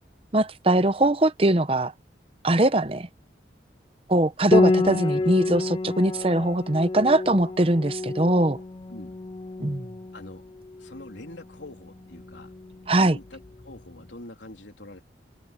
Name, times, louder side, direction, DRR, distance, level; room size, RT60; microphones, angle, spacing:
voice 1, 0.3-1.9 2.4-3.1 4.1-8.6 9.6-9.9 12.9-13.1, right 1 dB, 30° right, 0.8 m, -21 dB
Piano, 4.5-13.8, left 2 dB, 25° left, 0.4 m, -29 dB
voice 2, 4.8-5.6 8.9-9.2 10.1-10.4 10.8-12.5 12.9-15.0, left 1 dB, 80° left, 3.5 m, -44 dB
open air
head